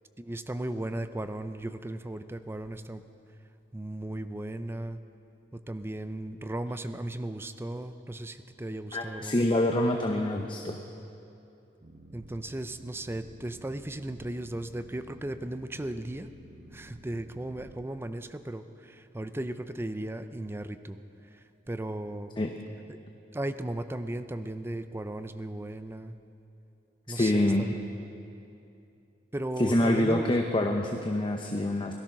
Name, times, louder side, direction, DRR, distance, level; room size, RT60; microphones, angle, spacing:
voice 1, 0.2-3.0 3.7-5.0 5.5-9.5 12.1-16.3 16.7-22.3 22.9-23.0 23.3-26.2 27.1-27.7 29.3-30.3, right 1 dB, 15° right, 10 dB, 0.5 m, -36 dB
voice 2, 8.9-10.8 22.4-22.5 27.1-27.7 29.6-31.9, left 1 dB, 30° left, 3 dB, 0.7 m, -26 dB
Boat Water vehicle, 11.8-17.8, equal, 40° right, 1.2 m, -51 dB
17.5 x 12.5 x 6.0 m, 2.7 s
head